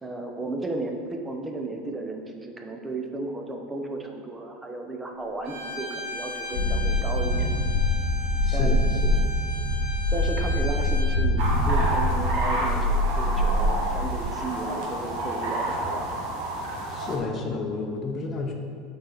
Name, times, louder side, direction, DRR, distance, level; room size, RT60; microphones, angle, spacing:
voice 1, 0.0-7.5 8.5-8.8 10.1-16.1, right 2 dB, 10° right, 2 dB, 0.6 m, -34 dB
Bowed string instrument, 5.4-11.2, left 2 dB, 75° right, 1.6 m, -37 dB
sound 1, 6.5-14.2, left 1 dB, 90° left, 1.2 m, -24 dB
voice 2, 8.4-9.1 16.9-18.5, left 3 dB, 25° left, 1 dB, 0.8 m, -31 dB
sound 2, 11.4-17.2, right 1 dB, 55° right, 1.3 m, -30 dB
8.4 x 4.3 x 3.9 m, 2.1 s
supercardioid pair, 165°, 0 cm